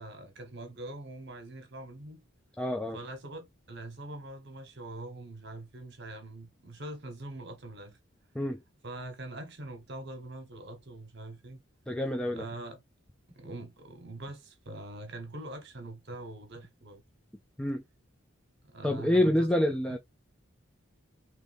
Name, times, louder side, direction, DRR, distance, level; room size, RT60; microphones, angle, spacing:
voice 1, 0.0-2.2 2.9-8.0 8.8-11.6 12.3-12.8 13.3-17.0 18.7-19.5 19.9-20.0, right 2 dB, 55° right, 1.2 m, -43 dB
voice 2, 2.6-3.0 8.3-8.6 11.9-12.4 17.6-17.8 18.8-20.0, left 1 dB, 5° left, 0.3 m, -27 dB
3.5 x 3.0 x 3.4 m
head